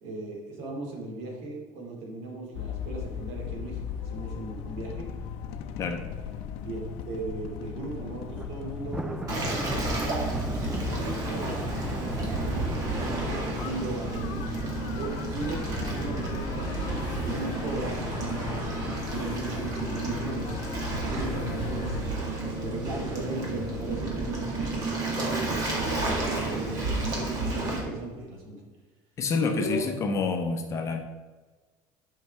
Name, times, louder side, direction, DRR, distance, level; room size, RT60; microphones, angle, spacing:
voice 1, 0.0-5.1 6.6-10.3 10.7-14.4 14.9-20.6 21.0-22.0 22.4-28.6 29.6-29.8, right 2 dB, 70° right, -1 dB, 2.6 m, -37 dB
sound 1, 2.5-22.0, left 8 dB, 65° left, 0.7 m, -38 dB
Thunder, 8.3-21.6 22.0-22.3 22.7-22.8 23.7-24.2, right 2 dB, 5° right, 0.4 m, -41 dB
Waves surf, 9.3-27.8, right 2 dB, 35° right, 1.9 m, -31 dB
voice 2, 29.2-31.0, left 4 dB, 30° left, 4 dB, 0.9 m, -28 dB
11.0 x 5.7 x 3.5 m, 1.3 s
cardioid pair, 165°, 11 cm